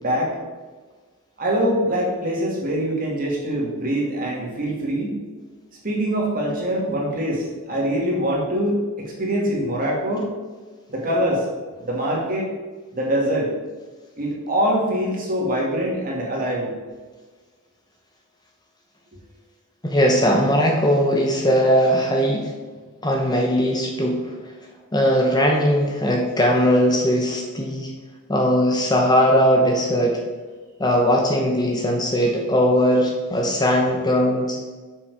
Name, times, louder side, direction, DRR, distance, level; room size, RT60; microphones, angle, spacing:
voice 1, 0.0-0.3 1.4-5.2 5.8-10.3 10.9-11.5 11.8-12.5 12.9-13.5 14.2-16.7, equal, 40° right, -3 dB, 2.2 m, -23 dB
voice 2, 19.8-22.5 23.0-24.3 24.9-27.9 28.3-30.2 30.8-34.7, equal, 20° left, 1 dB, 0.8 m, -19 dB
6.8 x 6.1 x 4.7 m, 1.4 s
head